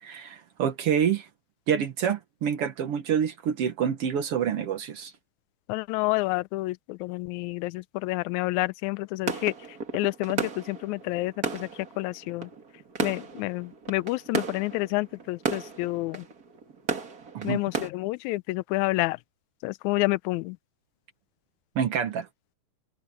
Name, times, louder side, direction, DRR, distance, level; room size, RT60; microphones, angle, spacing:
voice 1, 0.0-1.3 1.7-5.1 17.3-17.6 21.7-22.3, right 8 dB, 60° right, 1.8 m, -27 dB
voice 2, 5.7-9.5 9.9-11.7 12.0-12.5 13.0-16.2 17.4-19.2 19.6-20.6, left 21 dB, 80° left, 1.8 m, -29 dB
sound 1, 9.3-17.9, right 4 dB, 35° right, 1.9 m, -34 dB
omnidirectional pair, 3.7 m